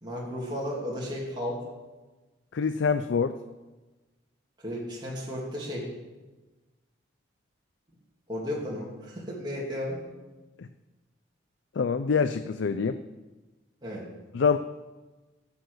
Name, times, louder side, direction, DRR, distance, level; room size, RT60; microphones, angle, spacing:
voice 1, 0.0-1.6 4.6-5.9 8.3-10.1 13.8-14.1, left 1 dB, 25° right, -5 dB, 2.8 m, -34 dB
voice 2, 2.5-3.3 10.6-10.7 11.8-13.0 14.3-14.6, left 5 dB, 75° left, 11 dB, 0.4 m, -25 dB
13.0 x 7.2 x 6.4 m, 1.2 s
head